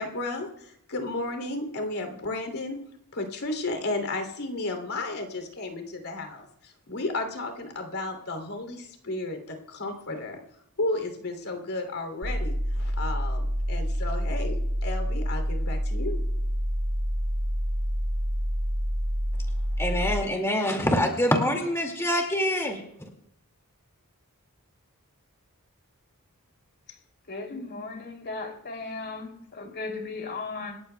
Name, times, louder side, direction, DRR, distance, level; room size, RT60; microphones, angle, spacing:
voice 1, 0.0-2.8 3.1-9.4 9.7-10.4 10.8-16.2, left 2 dB, 70° left, 2.9 m, -33 dB
sound 1, 12.2-20.2, equal, 65° right, 1.5 m, -27 dB
voice 2, 19.8-23.1, left 1 dB, 10° left, 2.1 m, -25 dB
voice 3, 27.3-30.8, left 3 dB, 50° left, 3.0 m, -36 dB
27.0 x 14.0 x 2.3 m
head